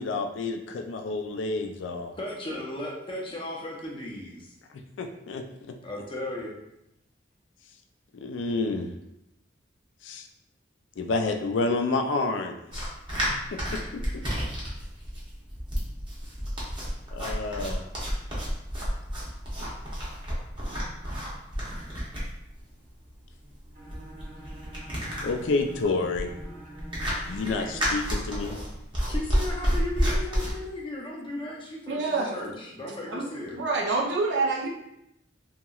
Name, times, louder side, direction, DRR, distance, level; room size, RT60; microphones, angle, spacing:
voice 1, 0.0-2.1 5.0-5.8 8.1-8.9 10.0-10.3 11.0-12.9 13.5-14.0 17.1-17.8 19.6-19.7 25.2-26.3 27.3-28.5, left 3 dB, 80° left, 5 dB, 0.4 m, -29 dB
voice 2, 2.2-4.5 5.8-6.6 29.1-33.6, left 1 dB, 30° left, -2 dB, 0.6 m, -36 dB
sound 1, 12.7-30.5, equal, 25° right, 0.9 m, -31 dB
Bowed string instrument, 23.7-28.0, right 1 dB, 45° right, 1.1 m, -45 dB
voice 3, 31.9-32.3 33.1-33.3 33.5-34.7, right 3 dB, 65° right, -1 dB, 0.5 m, -26 dB
2.9 x 2.8 x 2.3 m, 0.83 s
head